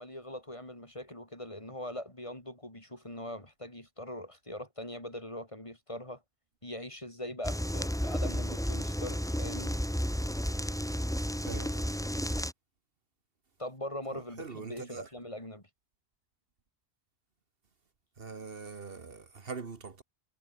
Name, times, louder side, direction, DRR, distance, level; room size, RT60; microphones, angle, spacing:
voice 1, 0.0-6.2 6.6-9.8 13.6-15.6, left 1 dB, 30° left, 5.1 m, -41 dB
sound 1, 7.4-12.5, equal, 5° left, 2.3 m, -32 dB
voice 2, 11.5-11.8 14.4-15.1 18.2-20.0, right 4 dB, 60° right, 1.7 m, -42 dB
omnidirectional pair, 1.1 m